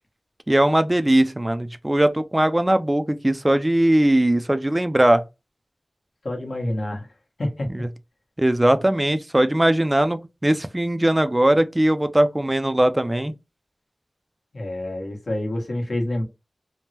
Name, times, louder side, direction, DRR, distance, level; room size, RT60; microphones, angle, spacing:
voice 1, 0.5-5.2 7.7-7.9 8.4-13.3, right 1 dB, 20° right, 0.3 m, -20 dB
voice 2, 6.2-7.1 7.4-7.7 14.5-16.2, left 1 dB, 70° left, 1.2 m, -27 dB
3.4 x 2.1 x 2.8 m
wide cardioid pair, 75°, 0 cm